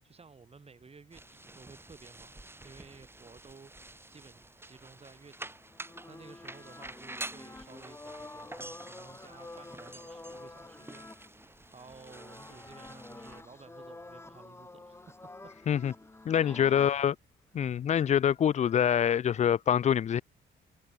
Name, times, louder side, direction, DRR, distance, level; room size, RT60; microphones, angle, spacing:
voice 1, 0.0-5.5 6.1-11.4 11.7-15.0 15.6-15.7 16.4-17.0 17.5-17.9, right 4 dB, 30° right, 3.0 m, -54 dB
sound 1, 1.1-13.4, right 2 dB, 10° right, 3.8 m, -48 dB
sound 2, 5.3-17.0 18.1-19.2, left 2 dB, 15° left, 1.2 m, -49 dB
voice 2, 16.3-17.1 17.5-20.2, left 9 dB, 35° left, 0.4 m, -25 dB
cardioid pair, 90°, 20 cm